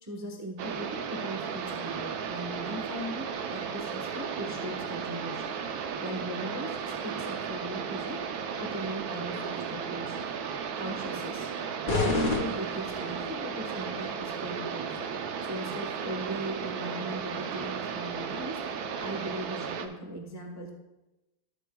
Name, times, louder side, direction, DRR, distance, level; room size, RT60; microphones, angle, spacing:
voice 1, 0.0-5.5 6.0-8.3 8.6-10.2 10.5-11.5 11.8-18.6 19.0-20.7, right 1 dB, 20° right, 1 dB, 0.5 m, -39 dB
sound 1, 0.6-19.9, right 6 dB, 65° right, 1.1 m, -35 dB
sound 2, 11.9-13.3, left 3 dB, 45° left, 0.6 m, -29 dB
12.5 x 7.7 x 2.3 m, 1.0 s
omnidirectional pair, 1.9 m